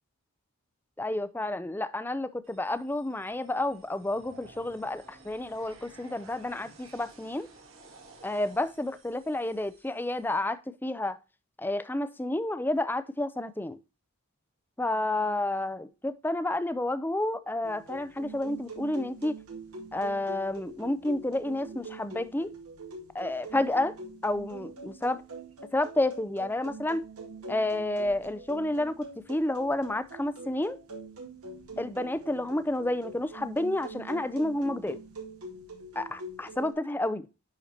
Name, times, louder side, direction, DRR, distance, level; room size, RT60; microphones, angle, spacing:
voice 1, 1.0-7.5 8.2-11.2 11.6-13.8 14.8-19.4 19.9-22.5 23.1-24.0 24.2-25.2 25.7-27.0 27.5-30.8 31.8-35.0 36.0-37.3, left 1 dB, 10° left, 0.4 m, -30 dB
sound 1, 2.4-10.4, right 3 dB, 65° right, 2.1 m, -55 dB
sound 2, 17.6-36.7, right 2 dB, 80° right, 1.9 m, -44 dB
10.5 x 4.4 x 2.8 m
head